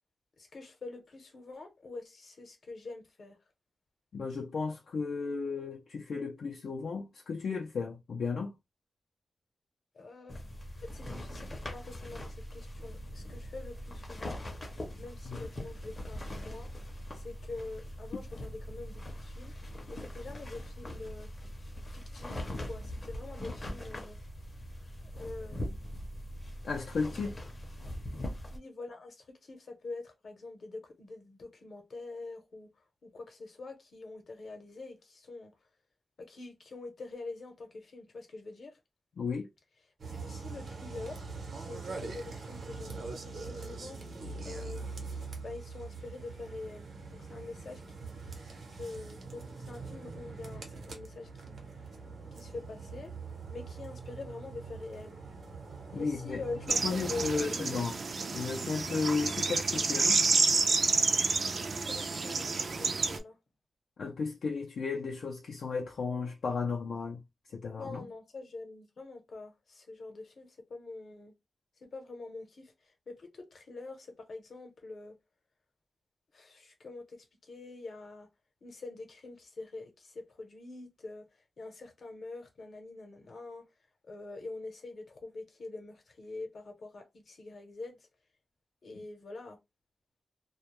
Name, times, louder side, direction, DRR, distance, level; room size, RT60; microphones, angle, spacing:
voice 1, 0.4-3.4 9.9-10.4 10.8-14.5 15.0-16.7 17.1-19.5 19.9-21.3 21.8-24.2 25.2-25.8 26.9-27.4 28.5-35.5 36.2-38.8 40.1-41.3 41.6-44.2 44.4-44.9 45.4-48.2 48.7-51.6 52.3-53.1 53.5-55.2 55.9-57.8 61.6-63.4 67.8-71.3 71.8-75.2 76.3-78.3 78.6-83.7 84.1-88.1 88.8-89.6, left 3 dB, 65° left, 0.8 m, -45 dB
voice 2, 4.1-8.5 15.3-15.4 26.6-27.3 39.2-39.5 55.9-56.4 56.8-57.9 58.3-60.2 64.0-67.2 67.5-68.0, left 4 dB, 80° left, 0.4 m, -34 dB
sound 1, 10.3-28.6, left 1 dB, 30° left, 0.6 m, -41 dB
sound 2, 40.0-57.4, right 4 dB, 80° right, 0.8 m, -43 dB
sound 3, 56.7-63.2, right 4 dB, 55° right, 0.4 m, -29 dB
2.2 x 2.1 x 3.0 m
wide cardioid pair, 120°, 0 cm